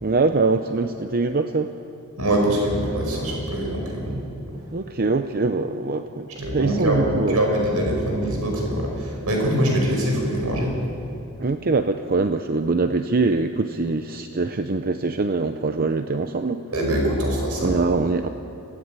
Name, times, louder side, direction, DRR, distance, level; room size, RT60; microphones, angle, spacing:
voice 1, 0.0-1.7 4.5-7.4 11.4-16.6 17.6-18.3, right 3 dB, 40° right, 8 dB, 0.7 m, -23 dB
voice 2, 2.2-4.2 6.4-10.7 16.7-17.7, right 1 dB, 85° right, 0 dB, 5.3 m, -23 dB
23.5 x 17.5 x 9.0 m, 2.9 s
head